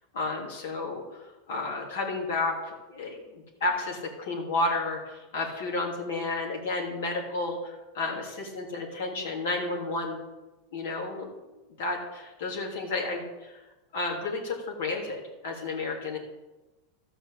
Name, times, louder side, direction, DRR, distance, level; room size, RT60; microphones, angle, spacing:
voice 1, 0.1-10.2 10.7-11.3 11.8-13.6 13.9-16.2, left 3 dB, 80° left, -1 dB, 3.3 m, -32 dB
13.0 x 5.1 x 8.3 m, 1.1 s
supercardioid pair, 140°, 0 cm